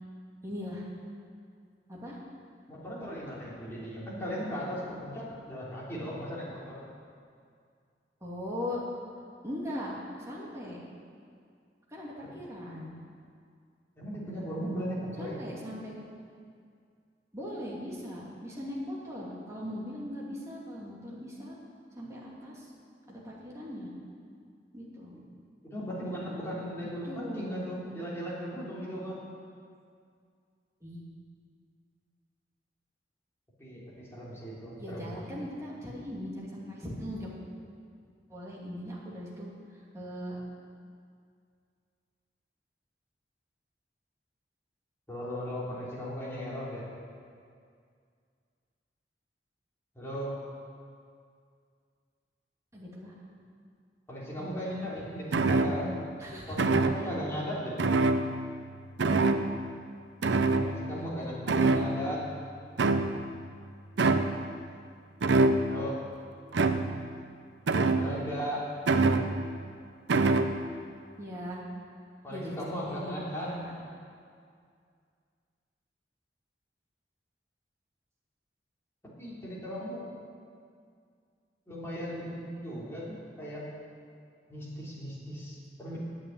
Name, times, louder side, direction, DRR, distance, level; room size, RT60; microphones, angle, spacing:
voice 1, 0.4-0.9 1.9-2.2 8.2-8.8 9.4-10.8 11.9-12.9 15.2-15.9 17.3-21.5 22.0-22.7 23.1-23.9 24.7-25.1 27.0-28.0 30.8-31.0 34.8-37.4 38.3-39.5 39.9-40.4 52.7-53.1 54.4-54.9 55.4-55.9 56.2-56.6 59.0-59.5 60.9-61.6 71.2-71.6 72.3-73.1 73.4-73.7, left 1 dB, 15° right, -5 dB, 2.6 m, -40 dB
voice 2, 2.7-6.8 14.0-15.4 25.6-29.2 33.6-35.2 45.1-46.8 49.9-50.4 54.1-55.9 56.5-57.8 60.6-62.3 65.7-66.0 68.0-68.7 72.2-73.5 79.0-80.1 81.7-83.7 84.5-86.0, equal, 15° left, -7 dB, 3.4 m, -37 dB
sound 1, 55.3-56.0 56.6-57.2 57.8-58.7 59.0-59.7 60.2-61.1 61.5-62.2 62.8-63.4 64.0-64.5 65.2-65.9 66.5-67.1 67.7-68.3 68.9-69.6 70.1-70.6, right 3 dB, 80° right, 0.6 m, -25 dB
9.2 x 9.0 x 9.0 m, 2.2 s
head